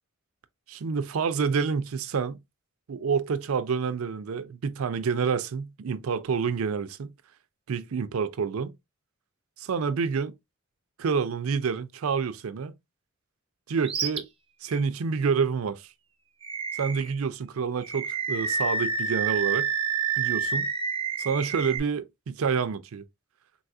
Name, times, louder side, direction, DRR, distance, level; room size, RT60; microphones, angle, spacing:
voice 1, 0.7-2.4 2.9-7.1 7.7-8.7 9.6-10.3 11.0-12.7 13.7-14.3 14.6-15.9 16.8-19.7 20.2-20.7 21.2-23.0, right 5 dB, 85° right, 0.4 m, -28 dB
Animal, 13.8-14.2 14.7-14.8 16.4-17.2 17.8-21.8, right 5 dB, 25° right, 0.4 m, -29 dB
3.9 x 2.4 x 2.6 m
head